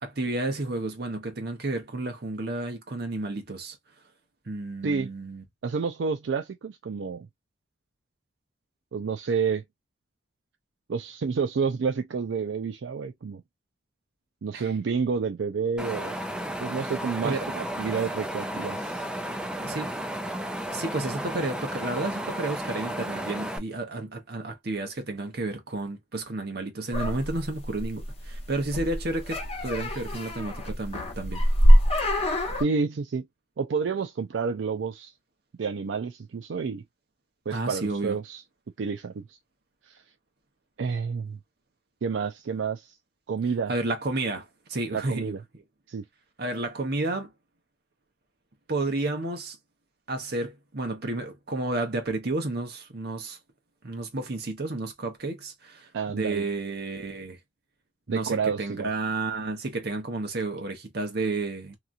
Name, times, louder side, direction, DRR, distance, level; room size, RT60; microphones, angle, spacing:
voice 1, 0.0-3.8 4.5-5.4 14.5-14.7 17.2-17.5 19.6-19.9 20.7-31.4 37.5-38.2 43.7-45.6 46.4-47.3 48.7-49.6 50.1-53.4 53.8-57.4 58.1-61.8, right 2 dB, 55° right, 1.0 m, -31 dB
voice 2, 5.6-7.3 8.9-9.6 10.9-13.4 14.4-16.2 16.6-19.1 32.6-33.3 33.6-35.1 35.6-36.8 37.5-38.4 38.8-39.4 39.9-40.0 40.8-41.4 42.0-43.0 43.3-43.7 44.9-45.4 45.9-46.0 55.9-56.5 58.1-58.9, right 5 dB, 75° right, 0.4 m, -29 dB
Wind, 15.8-23.6, right 1 dB, 5° right, 0.4 m, -33 dB
sound 1, 26.9-32.6, equal, 35° left, 1.0 m, -23 dB
2.9 x 2.3 x 2.5 m
head